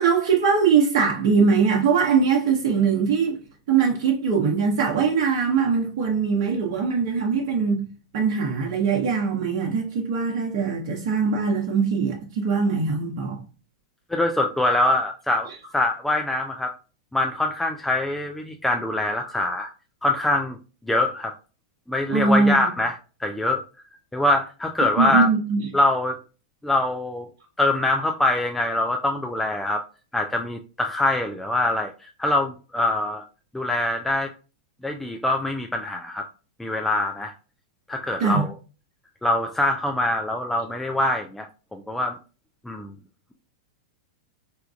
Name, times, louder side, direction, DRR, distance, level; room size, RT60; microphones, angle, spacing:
voice 1, 0.0-3.4 3.7-7.9 8.1-13.4 22.1-22.6 25.0-25.7 38.2-38.4, right 5 dB, 55° right, 0.8 m, -21 dB
voice 2, 14.1-15.5 15.7-16.7 17.1-19.7 20.0-20.6 20.9-21.3 21.9-22.9 23.2-23.6 24.1-25.3 25.7-26.2 26.6-27.3 27.6-29.8 30.1-31.9 32.2-33.2 33.5-34.3 34.8-36.2 36.6-37.3 37.9-38.5 39.2-41.5 41.7-42.2 42.7-42.9, left 2 dB, 5° left, 0.4 m, -23 dB
4.4 x 2.4 x 2.3 m
hypercardioid pair, 105°, 3 cm